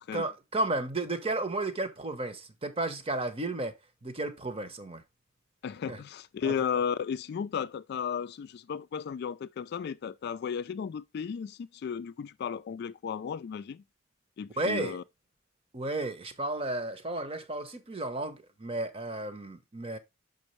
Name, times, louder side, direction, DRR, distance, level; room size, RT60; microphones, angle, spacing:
voice 1, 0.1-3.7 4.0-5.0 5.9-6.0 6.4-6.5 14.6-15.0 15.7-20.0, right 2 dB, 30° right, 0.8 m, -33 dB
voice 2, 5.6-13.8 14.4-15.0, left 7 dB, 55° left, 0.3 m, -34 dB
6.2 x 5.3 x 3.1 m
head